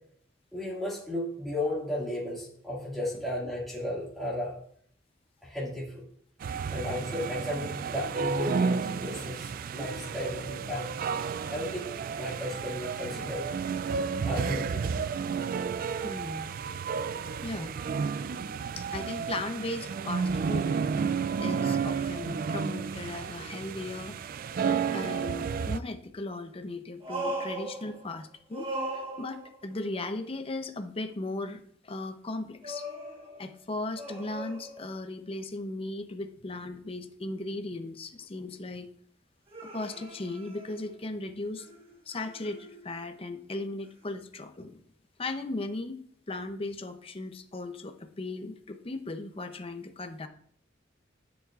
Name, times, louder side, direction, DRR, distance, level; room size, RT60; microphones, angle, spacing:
voice 1, 0.5-4.5 5.4-6.0 6.7-10.9 11.5-13.4 14.2-14.8, left 1 dB, ahead, -8 dB, 2.1 m, -34 dB
sound 1, 6.4-25.8, right 6 dB, 50° right, 0.3 m, -32 dB
voice 2, 13.1-13.6 16.0-16.5 17.4-17.8 18.8-24.2 24.9-32.9 33.4-38.9 39.7-41.7 42.1-44.8 45.2-46.0 46.3-50.3, left 2 dB, 30° left, 8 dB, 0.6 m, -37 dB
sound 2, 27.0-28.2 28.5-29.7 32.6-35.2 39.5-41.2 41.6-43.0 44.0-44.1, right 1 dB, 30° right, 1.3 m, -39 dB
12.0 x 7.2 x 2.4 m, 0.63 s
head